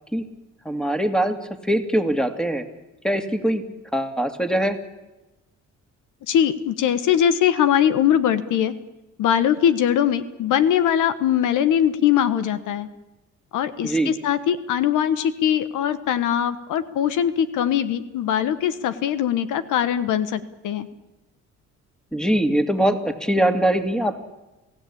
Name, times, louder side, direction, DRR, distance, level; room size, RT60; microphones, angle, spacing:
voice 1, 0.7-1.3 1.7-2.6 3.0-3.6 3.9-4.8 13.8-14.1 22.1-24.2, right 1 dB, ahead, 7 dB, 2.5 m, -22 dB
voice 2, 6.3-8.7 9.2-12.9 13.5-20.9, left 9 dB, 85° left, 12 dB, 1.3 m, -21 dB
28.0 x 16.5 x 8.7 m, 1.0 s
cardioid pair, 90°, 30 cm